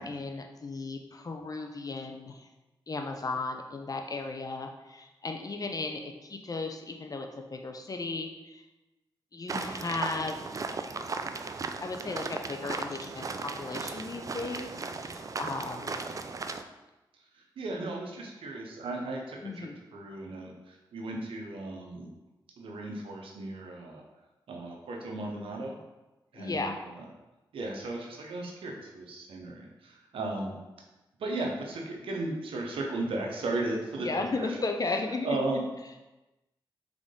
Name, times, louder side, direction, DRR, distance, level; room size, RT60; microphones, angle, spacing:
voice 1, 0.0-2.5 2.9-8.6 9.3-10.4 11.8-15.9 19.4-19.7 26.3-26.7 34.0-35.4, left 3 dB, 45° left, 4 dB, 0.6 m, -35 dB
sound 1, 9.5-16.6, right 4 dB, 40° right, 0.3 m, -36 dB
voice 2, 17.3-22.1 22.6-24.0 24.5-25.8 26.3-26.6 27.0-27.1 27.5-30.6 31.2-34.5 35.2-35.7, right 2 dB, 85° right, 0 dB, 0.8 m, -35 dB
3.7 x 3.6 x 3.7 m, 1.0 s
cardioid pair, 55°, 9 cm